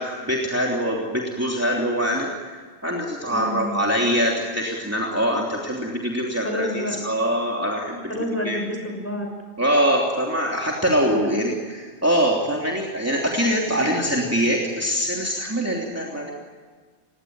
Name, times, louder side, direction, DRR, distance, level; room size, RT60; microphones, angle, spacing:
voice 1, 0.0-2.5 2.8-8.2 8.4-8.6 9.6-16.3, equal, 15° right, -2 dB, 3.3 m, -23 dB
voice 2, 3.2-3.8 6.4-7.0 8.1-9.3 11.1-11.4, left 1 dB, 10° left, 3 dB, 6.0 m, -29 dB
29.5 x 18.0 x 9.1 m, 1.5 s
omnidirectional pair, 1.1 m